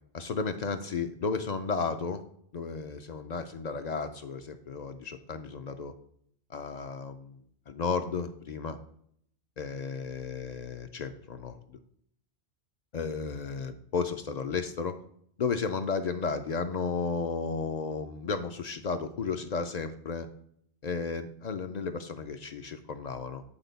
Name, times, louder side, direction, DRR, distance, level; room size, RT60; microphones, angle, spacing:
voice 1, 0.1-2.2 2.5-5.9 6.5-7.4 7.7-8.8 9.6-11.8 12.9-15.0 15.4-20.3 20.8-23.4, left 5 dB, 55° left, 8 dB, 0.5 m, -33 dB
8.8 x 4.2 x 4.0 m, 0.67 s
omnidirectional pair, 1.1 m